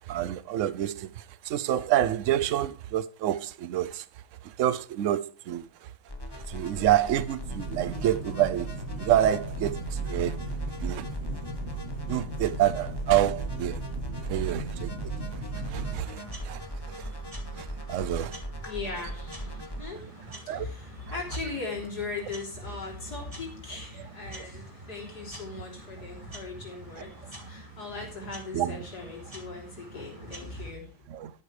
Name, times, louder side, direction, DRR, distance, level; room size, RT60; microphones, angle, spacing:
voice 1, 0.1-1.1 1.5-4.0 4.6-5.6 6.5-8.7 9.0-9.8 10.1-10.4 10.8-11.4 12.1-13.8 14.3-14.9 15.7-16.6 17.9-18.3 20.5-20.7 28.5-28.7 31.1-31.3, right 12 dB, 70° right, 0.7 m, -27 dB
sound 1, 6.1-19.8, equal, 15° left, 1.2 m, -39 dB
sound 2, 7.4-16.0, right 3 dB, 55° right, 4.3 m, -36 dB
sound 3, 15.5-30.7, right 2 dB, 15° right, 3.0 m, -46 dB
voice 2, 18.6-30.9 31.2-31.3, left 3 dB, 55° left, 3.9 m, -39 dB
12.5 x 11.0 x 3.3 m
omnidirectional pair, 2.0 m